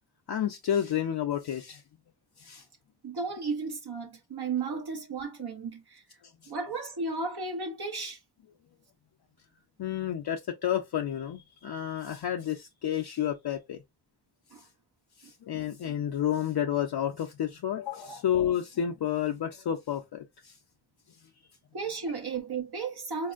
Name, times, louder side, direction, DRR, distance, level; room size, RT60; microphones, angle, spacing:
voice 1, 0.3-1.8 2.4-2.6 4.7-4.8 6.2-6.5 9.8-13.8 15.2-20.5 22.8-22.9, left 10 dB, 60° left, 0.5 m, -31 dB
voice 2, 3.0-6.0 6.5-8.2 14.5-14.6 18.0-18.2 21.7-23.3, right 4 dB, 55° right, 0.9 m, -34 dB
4.1 x 2.6 x 2.4 m
cardioid pair, 75°, 45 cm